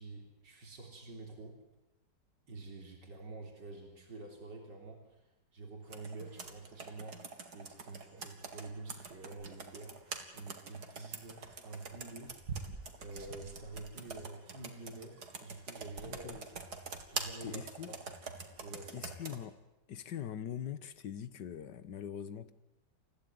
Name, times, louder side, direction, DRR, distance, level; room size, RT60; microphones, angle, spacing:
voice 1, 0.0-1.6 2.5-7.2 7.5-10.0 10.3-12.4 13.0-16.4 17.1-18.0 18.6-19.0, right 3 dB, 85° right, 1 dB, 4.2 m, -48 dB
Computer keyboard, 5.9-19.4, right 4 dB, 65° right, 2.7 m, -45 dB
voice 2, 16.0-16.4 17.4-18.0 18.9-19.6 19.9-22.5, left 9 dB, 75° left, 14 dB, 1.8 m, -42 dB
29.0 x 16.0 x 9.5 m, 0.98 s
omnidirectional pair, 1.9 m